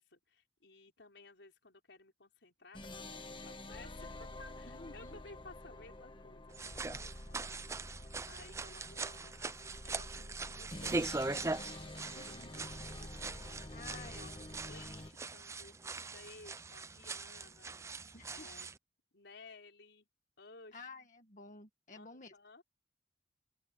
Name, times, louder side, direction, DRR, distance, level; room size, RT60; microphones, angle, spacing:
voice 1, 0.0-7.8 8.3-13.2 13.9-17.8 18.3-18.7 19.1-20.1 20.4-20.9 21.9-22.6, left 3 dB, 90° left, 4.7 m, -57 dB
sound 1, 2.7-15.1, left 1 dB, 30° left, 1.5 m, -48 dB
voice 2, 4.7-5.2 12.1-12.5 13.7-14.2 18.1-18.5 20.7-22.3, left 3 dB, 45° left, 1.6 m, -52 dB
sound 2, 6.5-18.8, right 3 dB, 15° right, 0.5 m, -41 dB
open air
head